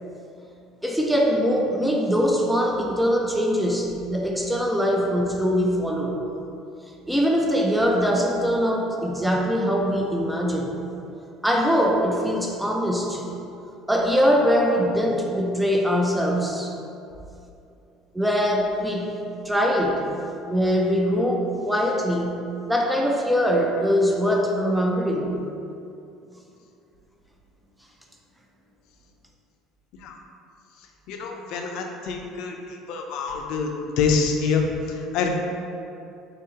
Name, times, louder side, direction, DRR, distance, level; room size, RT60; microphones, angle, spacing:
voice 1, 0.8-6.2 7.1-10.7 11.4-13.2 13.9-16.7 18.1-19.2 19.5-20.0 20.4-22.4 22.7-25.4, equal, 5° right, 0 dB, 0.5 m, -22 dB
voice 2, 31.1-35.3, left 5 dB, 70° left, 2 dB, 0.5 m, -26 dB
3.7 x 3.6 x 2.8 m, 2.7 s
supercardioid pair, 110°, 0 cm